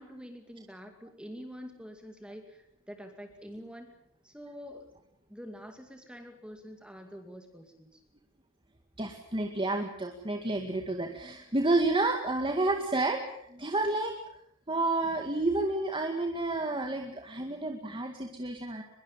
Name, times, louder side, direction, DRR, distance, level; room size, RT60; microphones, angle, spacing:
voice 1, 0.0-3.9 4.2-4.9 5.3-8.0, equal, 5° right, 5 dB, 2.3 m, -46 dB
voice 2, 9.0-14.2 14.7-18.8, right 2 dB, 25° right, 3 dB, 2.1 m, -30 dB
23.0 x 22.0 x 7.3 m, 0.72 s
head